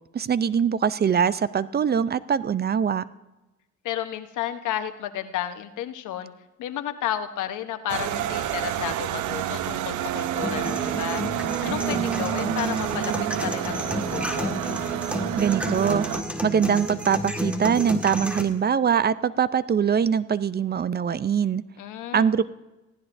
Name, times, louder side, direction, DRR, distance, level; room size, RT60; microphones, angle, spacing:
voice 1, 0.1-3.0 15.4-16.1 16.4-21.6 22.1-22.4, right 7 dB, 35° right, 16 dB, 0.4 m, -23 dB
voice 2, 3.8-6.3 6.6-11.2 11.6-13.1 13.4-14.6 21.8-22.3, left 11 dB, 85° left, 9 dB, 1.0 m, -32 dB
sound 1, 7.9-16.2, right 12 dB, 80° right, 0.7 m, -29 dB
sound 2, 10.4-18.4, left 1 dB, 5° right, 1.6 m, -31 dB
19.5 x 15.5 x 2.6 m, 1.0 s
cardioid pair, 90°, 30 cm